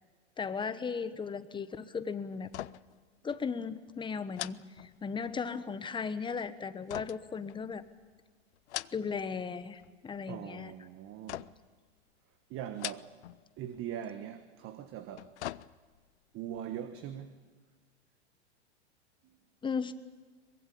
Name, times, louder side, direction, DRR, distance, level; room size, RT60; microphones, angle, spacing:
voice 1, 0.4-2.5 3.2-7.8 8.9-10.7 19.6-19.9, left 5 dB, 15° left, 1.2 m, -36 dB
sound 1, 2.4-3.0 3.3-3.5 4.3-5.4 6.9-8.0 8.5-9.3 9.6-10.2 11.3-11.8 12.7-13.4 13.7-13.8 14.9-16.1 16.5-16.6, left 14 dB, 75° left, 0.7 m, -42 dB
voice 2, 10.3-11.6 12.5-13.1 13.6-15.3 16.3-17.4 19.2-19.4, right 10 dB, 40° right, 1.4 m, -41 dB
23.5 x 21.5 x 8.6 m
hypercardioid pair, 110°, 34 cm